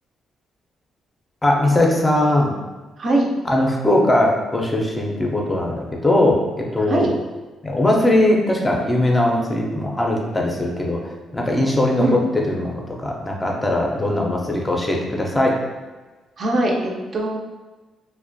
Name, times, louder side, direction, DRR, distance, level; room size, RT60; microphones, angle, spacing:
voice 1, 1.4-2.5 3.5-7.1 7.6-11.0 11.3-15.6, left 1 dB, 15° left, -1 dB, 0.4 m, -20 dB
voice 2, 3.0-3.3 6.9-7.1 12.0-12.2 16.4-17.4, right 1 dB, 50° right, -1 dB, 0.4 m, -21 dB
2.4 x 2.1 x 2.5 m, 1.2 s
cardioid pair, 90°, 0 cm